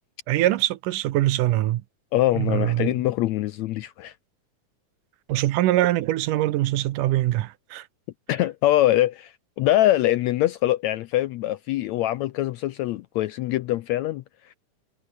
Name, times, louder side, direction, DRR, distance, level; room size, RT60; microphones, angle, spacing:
voice 1, 0.3-1.8 2.3-3.0 5.3-7.9, right 15 dB, 75° right, 2.5 m, -23 dB
voice 2, 2.1-4.1 8.3-14.5, left 14 dB, 80° left, 1.6 m, -23 dB
omnidirectional pair, 3.8 m